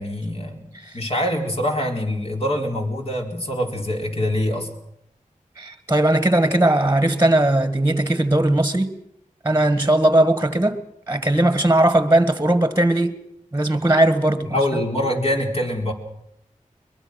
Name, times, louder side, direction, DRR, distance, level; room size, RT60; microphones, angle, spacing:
voice 1, 0.0-0.7 0.9-4.7 14.5-15.9, left 1 dB, 45° left, 4.4 m, -24 dB
voice 2, 5.6-8.9 9.4-10.8 11.1-13.2 13.5-14.5, right 1 dB, 15° right, 1.6 m, -18 dB
22.5 x 22.0 x 6.4 m
cardioid pair, 45°, 14 cm